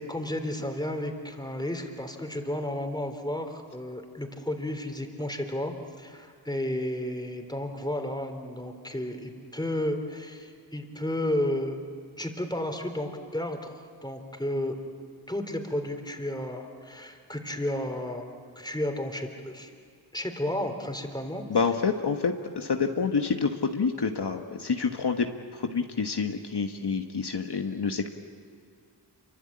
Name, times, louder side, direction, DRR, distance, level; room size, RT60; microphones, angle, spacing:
voice 1, 0.0-11.8 12.2-14.8 15.3-19.7 20.1-21.4, left 1 dB, 10° left, 5 dB, 3.5 m, -32 dB
voice 2, 21.5-25.3 25.5-28.1, left 5 dB, 65° left, 4 dB, 1.4 m, -28 dB
27.5 x 24.5 x 8.7 m, 2.2 s
cardioid pair, 55°, 43 cm